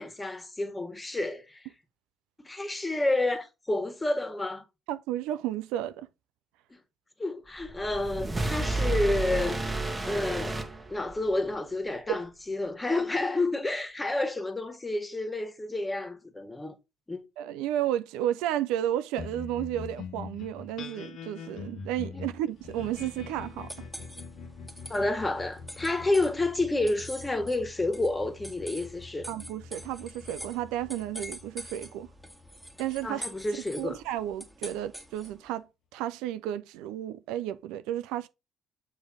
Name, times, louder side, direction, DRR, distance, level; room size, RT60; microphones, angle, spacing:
voice 1, 0.0-1.7 2.4-4.6 6.7-6.8 7.2-16.7 17.1-17.2 22.1-22.3 24.9-29.3 33.0-34.0, left 2 dB, 20° left, 1.7 m, -30 dB
voice 2, 4.9-6.1 12.1-12.2 17.4-23.7 29.3-32.1 32.8-33.3 33.8-35.7 35.9-38.3, right 12 dB, 75° right, 0.4 m, -32 dB
sound 1, 7.6-11.4, right 2 dB, 20° right, 1.3 m, -31 dB
sound 2, 19.2-33.8, left 5 dB, 60° left, 1.1 m, -44 dB
sound 3, 22.6-35.5, equal, 5° right, 1.8 m, -46 dB
7.1 x 3.1 x 4.9 m
hypercardioid pair, 50°, 0 cm